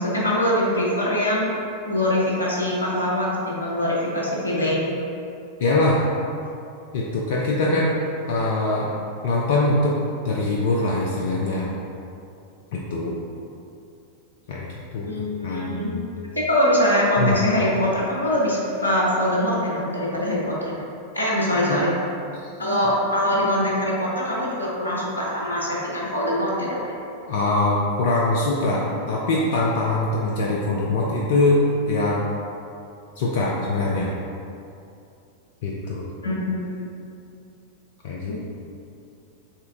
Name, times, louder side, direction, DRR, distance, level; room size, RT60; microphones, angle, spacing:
voice 1, 0.0-1.5 1.9-4.9 15.0-16.0 16.3-20.8 21.1-21.9 22.6-27.0 36.2-36.7, left 1 dB, 80° left, -4 dB, 0.9 m, -23 dB
voice 2, 5.6-6.0 6.9-7.9 8.3-8.9 9.2-10.0 10.2-11.7 12.9-13.1 14.5-14.7 14.9-15.1 15.4-16.0 17.2-17.4 21.7-21.8 27.3-32.2 33.2-34.1 35.6-36.1 38.0-38.3, left 2 dB, 55° left, -4 dB, 0.5 m, -22 dB
4.4 x 3.3 x 3.6 m, 2.6 s
figure-of-eight pair, 90°, 0 cm